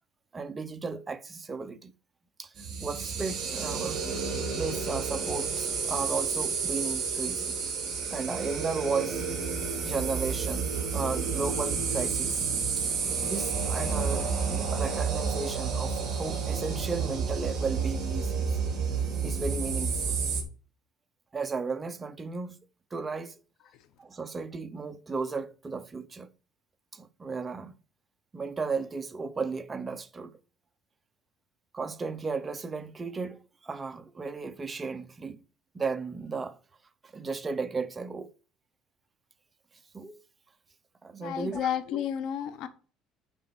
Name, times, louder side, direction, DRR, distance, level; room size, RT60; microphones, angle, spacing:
voice 1, 0.3-1.9 2.4-2.5 2.8-4.0 4.6-7.6 8.1-9.3 9.8-12.4 12.8-12.9 13.2-18.5 19.2-20.1 21.3-22.6 22.9-23.4 24.0-26.3 26.9-27.7 28.3-30.3 31.7-35.4 35.7-36.6 37.0-38.3 39.9-40.2 41.0-41.7, right 4 dB, 15° right, 0.7 m, -34 dB
sound 1, 2.6-20.4, right 5 dB, 35° right, 4.2 m, -30 dB
voice 2, 41.2-42.7, left 9 dB, 60° left, 1.0 m, -31 dB
8.9 x 5.0 x 6.9 m
cardioid pair, 160°, 0 cm